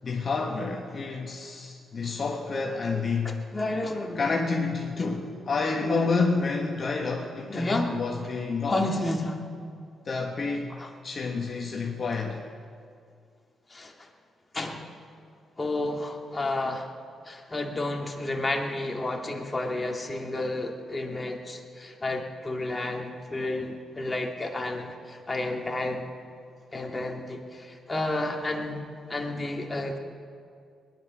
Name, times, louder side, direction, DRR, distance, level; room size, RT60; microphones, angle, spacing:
voice 1, 0.0-3.5 4.1-8.9 10.0-10.8 11.0-12.4, left 4 dB, 45° left, 0 dB, 1.4 m, -29 dB
voice 2, 3.2-4.4 5.8-6.2 7.5-7.9 8.7-9.4 10.8-10.9 13.7-14.1 14.5-14.9 15.6-16.9 17.3-26.0 26.7-28.8 29.1-30.0, left 2 dB, 20° left, 1 dB, 2.2 m, -31 dB
20.5 x 10.5 x 6.3 m, 2.3 s
cardioid pair, 80°, 0 cm